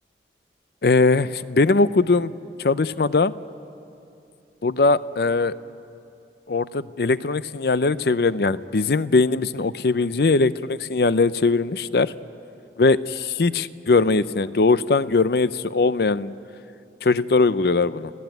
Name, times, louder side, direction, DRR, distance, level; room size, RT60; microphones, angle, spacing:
voice 1, 0.8-3.3 4.6-5.5 6.5-12.1 12.8-16.4 17.0-18.1, left 3 dB, 60° left, 16 dB, 0.6 m, -20 dB
29.5 x 16.5 x 9.2 m, 2.7 s
head